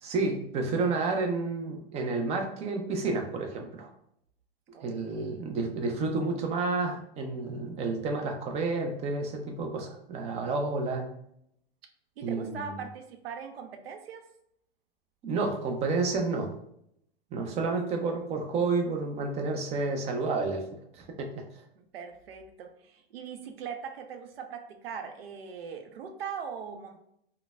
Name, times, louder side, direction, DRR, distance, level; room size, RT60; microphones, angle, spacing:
voice 1, 0.0-3.9 4.8-11.1 12.2-12.8 15.2-16.5 17.3-20.6 20.9-21.4, right 3 dB, 20° right, 3 dB, 0.5 m, -30 dB
voice 2, 4.7-5.4 12.2-14.3 21.8-27.0, right 6 dB, 70° right, 6 dB, 0.6 m, -41 dB
3.8 x 2.1 x 2.2 m, 0.73 s
hypercardioid pair, 120°, 30 cm